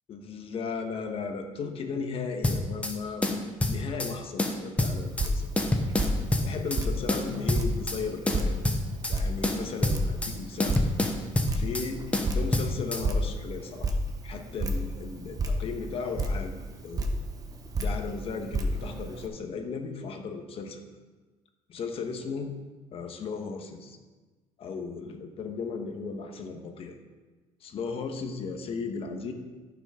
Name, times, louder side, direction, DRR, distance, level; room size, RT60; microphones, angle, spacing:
voice 1, 0.1-5.5 6.4-8.7 9.1-10.8 11.5-14.0 14.2-16.5 16.8-17.1 17.8-20.8 21.7-22.5 22.9-24.0 24.6-26.9 27.6-29.3, left 5 dB, 45° left, 5 dB, 1.2 m, -36 dB
sound 1, 2.4-2.9 3.2-4.1 4.4-5.3 5.6-6.8 7.1-8.0 8.3-9.2 9.4-10.3 10.6-11.9 12.1-13.0, left 2 dB, 10° left, 0.9 m, -27 dB
Drip, 4.8-19.3, right 1 dB, 25° right, 1.0 m, -32 dB
14.5 x 6.1 x 3.7 m, 1.3 s
cardioid pair, 135°, 13 cm